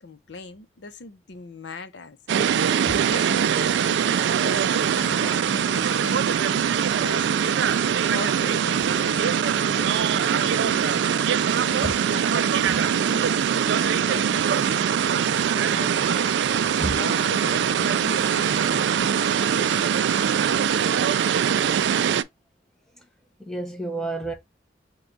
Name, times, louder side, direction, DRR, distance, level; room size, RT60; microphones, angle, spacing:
voice 1, 0.0-11.8 12.1-16.2 16.5-20.4, left 3 dB, 75° left, 0.7 m, -40 dB
sound 1, 2.3-22.2, right 8 dB, 70° right, 0.3 m, -22 dB
voice 2, 23.4-24.3, right 2 dB, ahead, 0.7 m, -30 dB
4.4 x 2.3 x 3.8 m
head